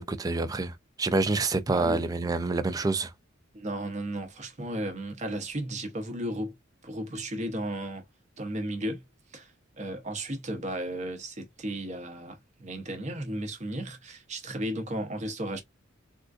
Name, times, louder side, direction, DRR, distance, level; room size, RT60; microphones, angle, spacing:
voice 1, 0.0-3.1, right 3 dB, 20° right, 0.3 m, -27 dB
voice 2, 1.7-2.0 3.5-6.5 6.8-8.0 8.4-9.0 9.3-9.5 9.8-15.6, right 1 dB, 35° right, 0.7 m, -34 dB
3.7 x 2.3 x 2.4 m
head